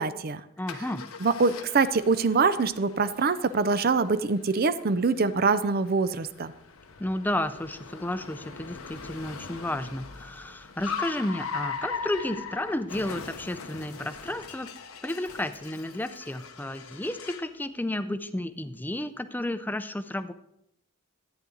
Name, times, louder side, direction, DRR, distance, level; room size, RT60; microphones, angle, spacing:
voice 1, 0.0-0.4 1.2-6.5, right 4 dB, 45° right, 13 dB, 0.5 m, -24 dB
voice 2, 0.6-1.1 7.0-14.7 15.0-20.3, left 1 dB, 10° left, 11 dB, 0.5 m, -32 dB
Car, 0.7-17.6, left 5 dB, 85° left, 0.9 m, -41 dB
13.5 x 9.2 x 3.9 m, 0.79 s
head